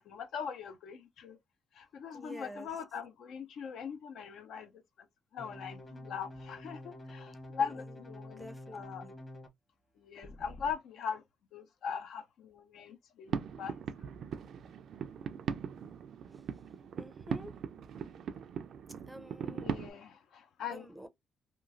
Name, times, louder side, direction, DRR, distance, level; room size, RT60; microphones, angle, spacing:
voice 1, 0.0-1.4 1.7-4.8 5.3-9.1 10.0-11.2 11.5-13.8 14.0-14.1 19.4-20.8, left 6 dB, 75° left, 0.5 m, -41 dB
voice 2, 2.1-2.7 7.6-7.8 8.4-9.1 16.3-16.5 17.0-17.6 19.1-19.7 20.7-21.1, right 1 dB, 5° right, 0.5 m, -49 dB
sound 1, 5.4-9.5 10.2-10.7, left 1 dB, 30° left, 1.1 m, -48 dB
sound 2, 13.3-19.9, right 7 dB, 65° right, 0.3 m, -39 dB
2.9 x 2.3 x 2.5 m
cardioid pair, 90°, 0 cm